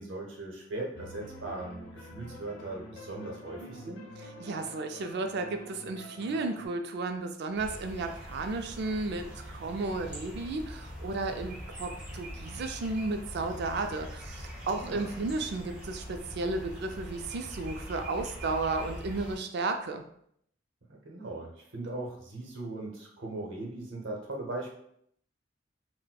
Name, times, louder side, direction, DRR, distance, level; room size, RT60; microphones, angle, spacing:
voice 1, 0.0-4.0 14.7-15.1 20.9-24.7, right 2 dB, 90° right, 0 dB, 0.8 m, -39 dB
sound 1, 0.9-6.7, equal, 65° left, 0.8 m, -47 dB
voice 2, 4.4-20.0, right 3 dB, 60° right, 6 dB, 0.4 m, -33 dB
sound 2, 7.5-19.4, equal, 5° right, 1.0 m, -43 dB
4.1 x 2.1 x 2.2 m, 0.69 s
head